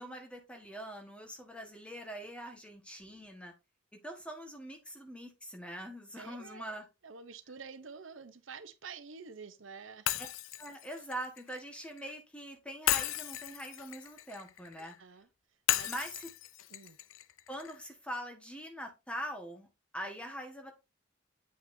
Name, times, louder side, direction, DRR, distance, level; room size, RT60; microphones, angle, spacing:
voice 1, 0.0-3.5 4.0-6.8 10.2-10.3 10.6-14.9 15.8-16.3 17.5-19.7 19.9-20.7, equal, 5° left, 1.5 m, -43 dB
voice 2, 6.2-6.7 7.0-10.2 14.8-15.3 15.7-15.9 16.7-17.0, right 5 dB, 80° right, 0.8 m, -48 dB
Shatter, 10.1-12.1 12.9-15.0 15.7-17.8, left 13 dB, 85° left, 0.5 m, -35 dB
8.5 x 6.0 x 2.7 m
head